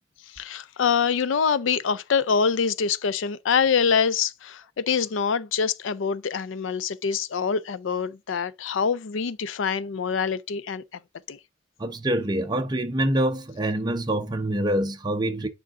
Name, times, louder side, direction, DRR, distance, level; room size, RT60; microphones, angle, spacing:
voice 1, 0.4-10.8 11.3-11.4, left 6 dB, 65° left, 0.4 m, -25 dB
voice 2, 11.8-15.5, right 1 dB, 20° right, 0.7 m, -25 dB
9.2 x 3.8 x 3.7 m
head